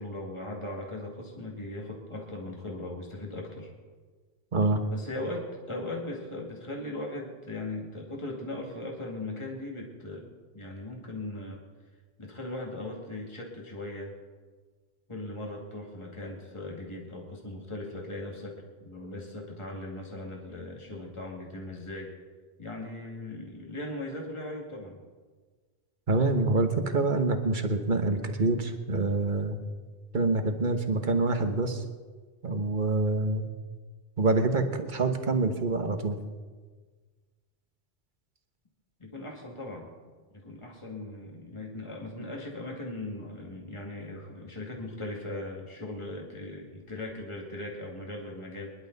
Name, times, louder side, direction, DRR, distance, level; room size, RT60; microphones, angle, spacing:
voice 1, 0.0-3.7 4.9-11.6 12.2-14.1 15.1-22.1 22.6-25.0 39.0-39.9 40.3-48.7, left 2 dB, 25° left, -1 dB, 2.3 m, -39 dB
voice 2, 4.5-4.8 26.1-29.6 30.1-31.8 32.4-33.5 34.2-36.2, right 3 dB, 45° right, 7 dB, 1.3 m, -26 dB
25.0 x 11.5 x 4.0 m, 1.4 s
omnidirectional pair, 1.2 m